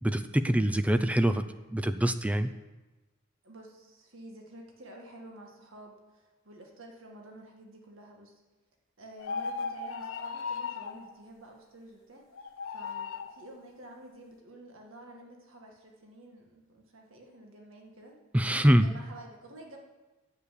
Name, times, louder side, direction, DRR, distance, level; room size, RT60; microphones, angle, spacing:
voice 1, 0.0-1.4 1.7-2.5 18.3-18.9, right 1 dB, 5° right, 9 dB, 0.4 m, -24 dB
voice 2, 3.4-8.4 9.0-18.2 18.8-19.8, right 1 dB, 70° right, 0 dB, 1.9 m, -50 dB
sound 1, 9.2-11.0 12.3-13.3, left 5 dB, 80° left, 1.2 m, -36 dB
9.7 x 8.1 x 8.4 m, 1.1 s
head